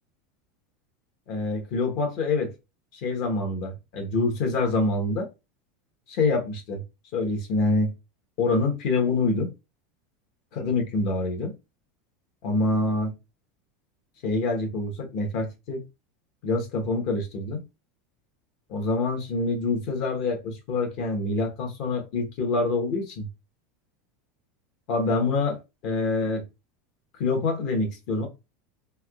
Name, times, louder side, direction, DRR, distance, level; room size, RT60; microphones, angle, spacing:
voice 1, 1.3-2.5 3.0-5.3 6.1-6.8 7.1-7.9 8.4-9.5 10.5-11.5 12.4-13.1 14.2-15.8 16.4-17.6 18.7-23.3 24.9-26.4 27.2-28.3, left 3 dB, 55° left, 1.0 m, -26 dB
3.5 x 2.7 x 2.3 m
supercardioid pair, 135°, 0 cm